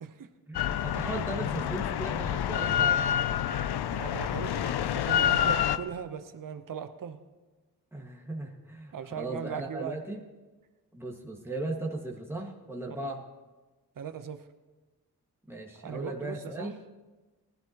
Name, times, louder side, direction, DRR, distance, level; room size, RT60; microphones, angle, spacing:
Drill, 0.5-5.8, left 10 dB, 85° left, 0.6 m, -28 dB
voice 1, 0.5-3.1 7.9-10.2 10.9-13.2 15.5-16.8, right 2 dB, 5° right, 0 dB, 1.9 m, -37 dB
voice 2, 3.9-7.2 8.9-10.0 13.0-13.1 14.0-14.4 15.8-16.7, right 7 dB, 55° right, 9 dB, 0.9 m, -39 dB
19.0 x 13.0 x 3.0 m, 1.2 s
cardioid pair, 55°, 38 cm